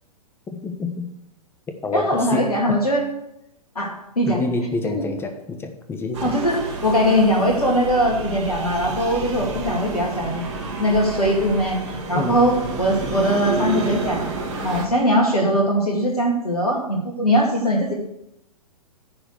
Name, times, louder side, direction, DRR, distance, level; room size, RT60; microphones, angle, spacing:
voice 1, 0.5-1.1 1.8-2.8 4.2-6.3 12.1-12.4, left 3 dB, 10° left, 6 dB, 1.1 m, -27 dB
voice 2, 1.9-3.1 3.7-4.4 4.8-5.0 6.2-10.4 10.8-14.3 14.6-17.9, equal, 75° left, -1 dB, 2.4 m, -21 dB
sound 1, 6.1-14.9, right 3 dB, 50° right, 2.0 m, -29 dB
10.5 x 4.8 x 8.0 m, 0.82 s
figure-of-eight pair, 110°, 19 cm